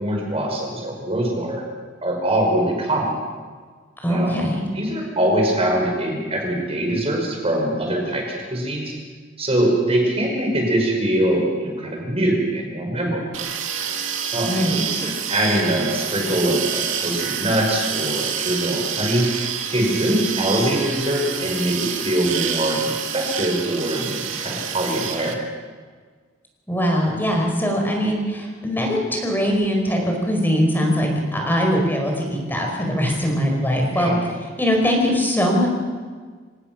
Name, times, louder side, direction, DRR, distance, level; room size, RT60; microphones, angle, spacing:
voice 1, 0.0-1.6 2.0-3.1 4.1-4.3 4.7-8.9 9.4-13.2 14.3-25.4 33.9-34.2, right 1 dB, 30° right, 0 dB, 5.2 m, -23 dB
voice 2, 4.0-4.6 14.5-14.8 26.7-34.1 34.6-35.7, equal, 10° left, 1 dB, 4.7 m, -21 dB
sound 1, 13.3-25.3, right 8 dB, 85° right, 2.2 m, -28 dB
26.5 x 18.5 x 6.1 m, 1.5 s
head